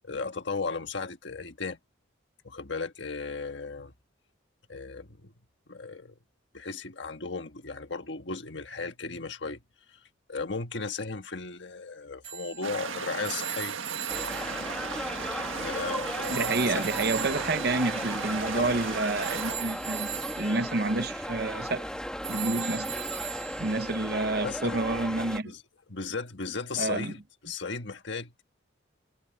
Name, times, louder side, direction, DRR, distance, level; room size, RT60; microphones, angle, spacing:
voice 1, 0.0-1.8 2.4-3.9 4.7-5.3 5.7-6.1 6.5-9.6 9.9-10.0 10.3-13.8 15.5-16.8 18.5-18.8 24.4-24.8 25.4-25.6 25.9-28.3, left 4 dB, 65° left, 1.5 m, -35 dB
Telephone, 12.2-15.9 16.2-24.1, right 11 dB, 35° right, 1.8 m, -40 dB
sound 1, 12.6-19.5, right 6 dB, 85° right, 1.7 m, -36 dB
sound 2, 14.1-25.4, equal, 5° left, 1.8 m, -36 dB
voice 2, 16.3-21.9 22.3-22.9 23.6-25.5 26.8-27.1, right 2 dB, 50° right, 0.9 m, -29 dB
head